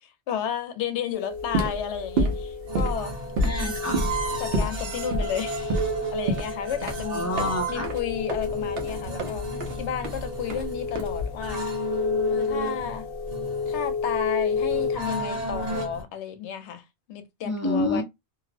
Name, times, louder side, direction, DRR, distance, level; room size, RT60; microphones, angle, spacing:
voice 1, 0.0-3.1 4.4-7.3 7.7-9.4 9.8-11.6 12.3-13.0 13.7-18.0, left 8 dB, 90° left, 0.9 m, -32 dB
sound 1, 1.1-15.0, left 5 dB, 60° left, 0.8 m, -32 dB
sound 2, 1.4-11.6, right 1 dB, 65° right, 0.9 m, -29 dB
sound 3, 2.7-16.0, right 3 dB, 85° right, 1.4 m, -34 dB
voice 2, 3.4-4.1 7.1-7.9 17.4-18.0, left 2 dB, 25° left, 0.4 m, -27 dB
2.7 x 2.0 x 2.5 m
omnidirectional pair, 1.1 m